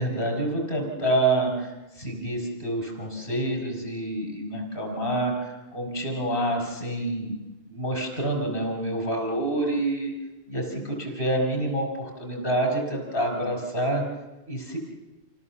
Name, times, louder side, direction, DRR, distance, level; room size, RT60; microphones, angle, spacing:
voice 1, 0.0-7.4 7.7-10.1 10.5-14.0 14.5-14.8, right 1 dB, 45° left, 1 dB, 5.4 m, -27 dB
27.5 x 17.5 x 7.3 m, 1.1 s
omnidirectional pair, 1.3 m